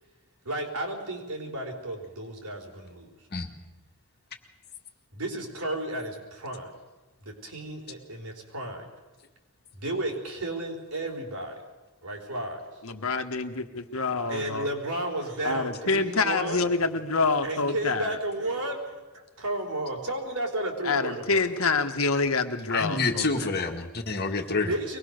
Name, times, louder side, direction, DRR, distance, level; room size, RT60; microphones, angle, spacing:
voice 1, 0.4-3.1 5.1-6.7 7.2-8.9 9.8-11.6 12.0-12.6 14.2-16.6 17.4-21.5 24.7-25.0, right 1 dB, 90° right, 1 dB, 4.2 m, -33 dB
voice 2, 12.8-14.7 15.4-18.2 20.8-23.5, left 4 dB, 70° left, 6 dB, 1.4 m, -27 dB
voice 3, 22.7-24.7, left 3 dB, 45° left, 4 dB, 1.9 m, -28 dB
23.0 x 19.0 x 6.6 m, 1.2 s
head